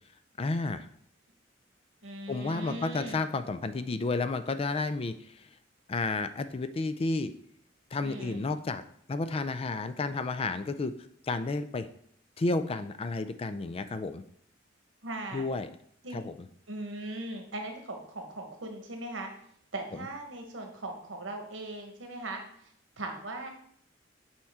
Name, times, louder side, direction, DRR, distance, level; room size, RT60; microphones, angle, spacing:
voice 1, 0.4-0.9 2.3-5.5 5.9-7.3 7.9-8.8 9.1-10.9 11.3-11.9 12.4-14.2 15.3-15.7 16.1-16.3, left 3 dB, 30° left, 11 dB, 0.4 m, -31 dB
voice 2, 2.0-3.2 8.0-8.5 15.0-15.5 16.0-16.2 16.7-19.3 19.7-22.4 23.0-23.5, right 2 dB, 85° right, 3 dB, 1.3 m, -39 dB
7.0 x 4.4 x 3.6 m, 0.65 s
head